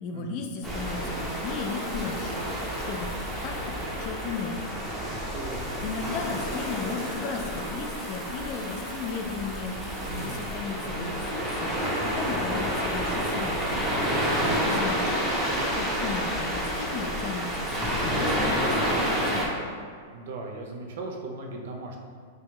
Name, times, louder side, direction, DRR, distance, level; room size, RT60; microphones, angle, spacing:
voice 1, 0.0-2.5 2.9-3.1 3.4-4.9 5.8-9.9 10.1-11.7 12.0-13.7 14.1-19.5, left 5 dB, 40° left, 4 dB, 0.4 m, -36 dB
sound 1, 0.6-19.5, equal, 10° right, 0.7 m, -29 dB
voice 2, 5.3-5.8 10.1-10.4 14.2-14.7 20.1-22.0, right 2 dB, 70° right, 2 dB, 0.6 m, -38 dB
3.4 x 2.8 x 3.2 m, 2.1 s
hypercardioid pair, 140°, 0 cm